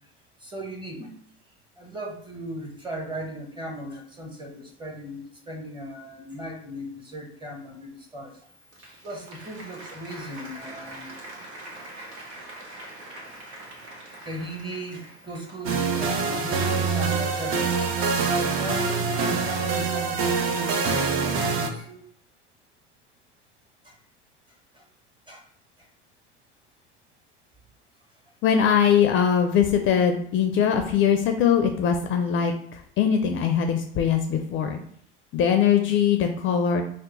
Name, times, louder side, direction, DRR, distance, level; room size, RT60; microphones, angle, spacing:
voice 1, 0.4-1.2 1.8-8.5 9.0-11.1 13.3-13.4 14.2-17.8 18.0-22.0 23.8-24.0 24.7-24.8 25.3-25.5 25.8-25.9, equal, 15° right, 1 dB, 0.9 m, -37 dB
Applause, 8.4-16.0, right 1 dB, 85° right, 0.9 m, -43 dB
sound 1, 15.6-21.7, right 5 dB, 40° right, 0.6 m, -25 dB
voice 2, 28.4-34.8 35.3-36.8, left 8 dB, 40° left, 6 dB, 0.4 m, -21 dB
2.8 x 2.0 x 3.8 m, 0.64 s
hypercardioid pair, 80°, 32 cm